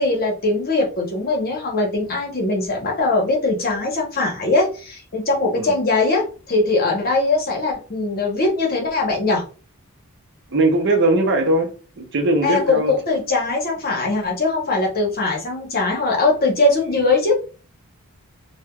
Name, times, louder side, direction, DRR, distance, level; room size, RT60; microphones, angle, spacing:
voice 1, 0.0-9.4 12.4-17.3, left 3 dB, 45° left, 0.8 m, -21 dB
voice 2, 10.5-12.9, right 2 dB, 55° right, 0.6 m, -19 dB
3.3 x 2.1 x 2.2 m
head